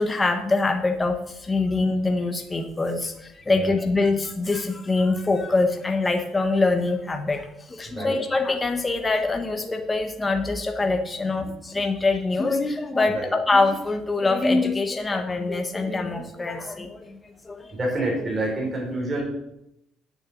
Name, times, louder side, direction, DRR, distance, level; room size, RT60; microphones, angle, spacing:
voice 1, 0.0-17.8, left 3 dB, 15° left, 4 dB, 1.2 m, -24 dB
voice 2, 17.7-19.2, right 1 dB, 25° right, -2 dB, 5.0 m, -28 dB
8.8 x 7.0 x 8.3 m, 0.80 s
cardioid pair, 120°, 0 cm